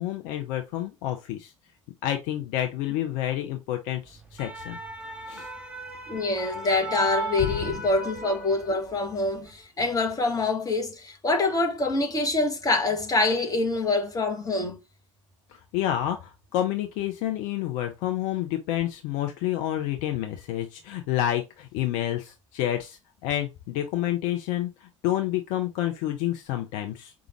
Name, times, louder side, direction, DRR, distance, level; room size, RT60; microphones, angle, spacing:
voice 1, 0.0-1.5 2.0-4.8 5.3-5.5 7.4-7.6 15.5-27.1, left 12 dB, 55° left, 0.6 m, -29 dB
sound 1, 4.1-8.9 9.3-9.5, right 2 dB, 5° right, 1.1 m, -36 dB
voice 2, 6.1-14.8, left 2 dB, 20° left, 1.2 m, -25 dB
4.9 x 2.4 x 2.9 m
figure-of-eight pair, 70°, 16 cm